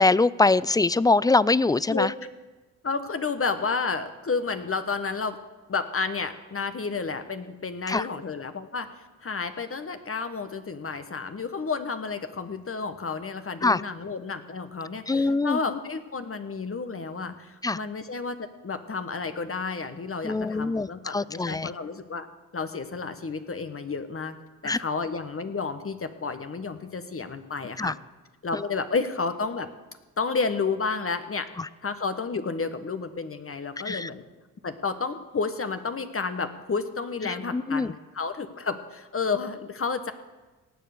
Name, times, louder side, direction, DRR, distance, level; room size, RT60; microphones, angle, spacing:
voice 1, 0.0-2.1 7.9-8.1 13.6-13.8 15.1-15.6 17.6-17.8 20.2-20.9 21.1-21.7 24.6-24.8 27.8-27.9 28.5-28.6 33.9-34.1 37.5-37.9, left 3 dB, 10° left, 20 dB, 0.3 m, -23 dB
voice 2, 2.8-5.4 5.7-18.4 18.6-22.3 22.5-24.4 24.6-28.0 28.4-29.7 30.2-31.5 31.8-34.2 34.6-40.1, left 4 dB, 35° left, 9 dB, 1.3 m, -31 dB
18.5 x 6.8 x 6.7 m, 1.2 s
hypercardioid pair, 45°, 40 cm